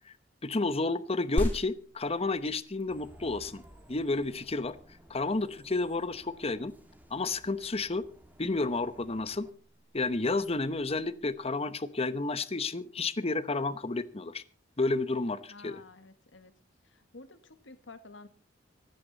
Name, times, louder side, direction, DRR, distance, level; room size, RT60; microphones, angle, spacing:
voice 1, 0.4-3.6 3.9-4.8 5.1-6.7 7.1-8.0 8.4-9.5 9.9-14.4 14.8-15.8, left 3 dB, 35° left, 14 dB, 0.9 m, -31 dB
sound 1, 1.4-11.3, equal, 10° left, 3.4 m, -41 dB
sound 2, 2.9-9.5, equal, 10° right, 1.9 m, -56 dB
voice 2, 15.5-16.5 16.8-18.3, left 3 dB, 80° left, 10 dB, 1.6 m, -51 dB
25.5 x 9.6 x 4.1 m, 0.40 s
head